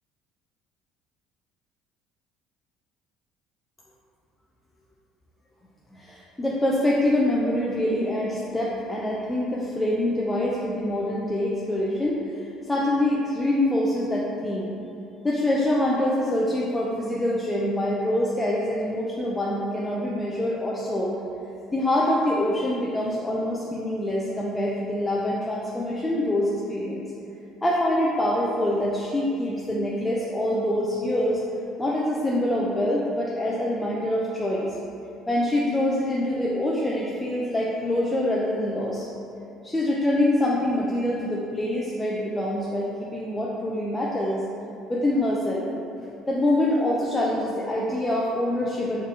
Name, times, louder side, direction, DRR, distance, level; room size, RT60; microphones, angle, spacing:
voice 1, 5.9-14.7 15.2-21.2 21.7-27.1 27.6-31.4 31.8-34.8 35.3-39.1 39.6-44.4 44.9-45.7 46.3-49.0, left 1 dB, 15° left, -5 dB, 0.4 m, -25 dB
3.9 x 2.6 x 2.4 m, 2.7 s
hypercardioid pair, 60°, 0 cm